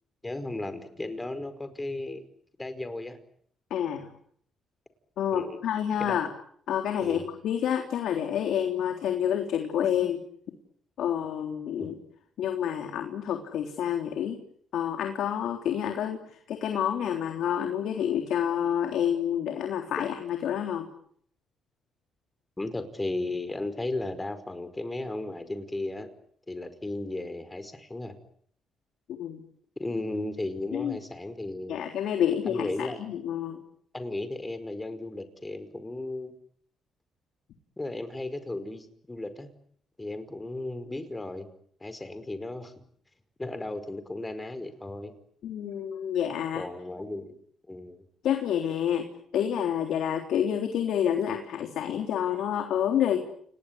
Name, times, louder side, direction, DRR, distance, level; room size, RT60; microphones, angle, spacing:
voice 1, 0.2-2.2 2.6-3.2 5.3-5.6 6.0-6.2 7.0-7.3 11.8-11.9 22.6-26.1 26.5-28.2 29.8-32.0 32.5-33.0 33.9-36.3 37.8-39.5 40.0-41.5 41.8-42.7 43.4-45.1 46.5-47.4 47.7-48.1, left 2 dB, 15° left, 11 dB, 5.1 m, -35 dB
voice 2, 3.7-4.1 5.2-6.3 6.7-10.2 11.0-12.0 12.4-14.4 14.7-20.9 29.2-29.4 30.7-31.0 31.7-33.6 45.4-46.6 48.2-53.2, left 9 dB, 75° left, 5 dB, 3.6 m, -28 dB
29.0 x 19.5 x 9.8 m, 0.65 s
cardioid pair, 90°, 0 cm